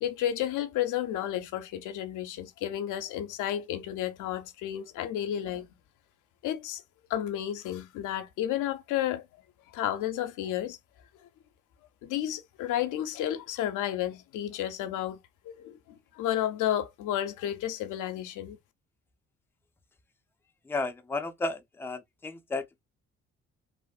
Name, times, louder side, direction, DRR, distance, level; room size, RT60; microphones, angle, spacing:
voice 1, 0.0-5.7 6.4-6.8 7.1-9.3 9.7-10.8 12.0-15.2 15.4-18.6, left 11 dB, 90° left, 0.6 m, -32 dB
voice 2, 20.6-22.8, left 3 dB, 10° left, 0.4 m, -33 dB
3.1 x 2.0 x 2.2 m
cardioid pair, 90°, 30 cm